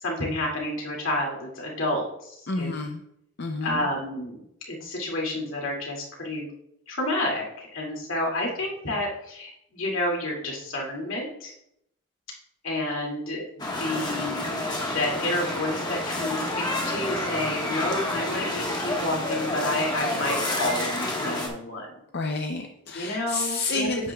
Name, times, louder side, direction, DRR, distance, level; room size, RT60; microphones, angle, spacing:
voice 1, 0.0-2.3 2.6-2.7 3.6-4.4 4.7-6.4 6.9-11.5 12.6-21.9 22.9-23.9, left 1 dB, 70° left, -1 dB, 2.4 m, -30 dB
voice 2, 2.5-3.0 3.4-3.8 22.1-24.0, left 3 dB, 50° left, 4 dB, 0.6 m, -29 dB
sound 1, 13.6-21.5, left 1 dB, 20° left, 1.3 m, -29 dB
9.8 x 8.9 x 2.3 m, 0.75 s
head